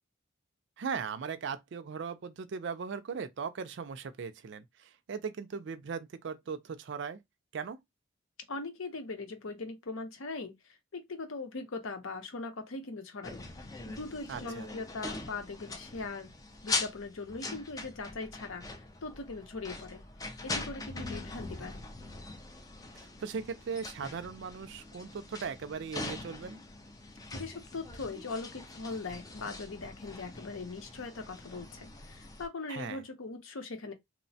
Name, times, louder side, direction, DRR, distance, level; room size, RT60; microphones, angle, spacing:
voice 1, 0.8-7.2 7.5-7.8 14.3-14.7 21.0-21.2 22.9-26.6 32.7-33.0, right 6 dB, 55° right, 0.4 m, -38 dB
voice 2, 8.5-13.4 13.9-16.3 16.6-20.0 20.4-21.9 27.3-33.9, left 3 dB, 70° left, 0.7 m, -40 dB
sound 1, 13.2-32.5, left 3 dB, 15° left, 0.3 m, -42 dB
3.0 x 2.1 x 2.6 m
head